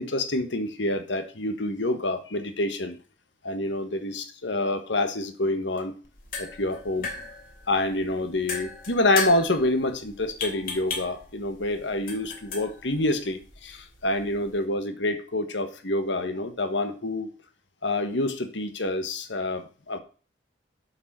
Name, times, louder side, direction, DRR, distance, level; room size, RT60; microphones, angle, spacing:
voice 1, 0.0-3.0 3.4-5.9 6.4-7.1 7.7-13.4 14.0-17.3 17.8-20.0, left 1 dB, 75° left, 8 dB, 1.5 m, -27 dB
sound 1, 6.0-14.6, left 4 dB, 50° left, 2.9 m, -37 dB
7.3 x 6.3 x 6.1 m, 0.38 s
head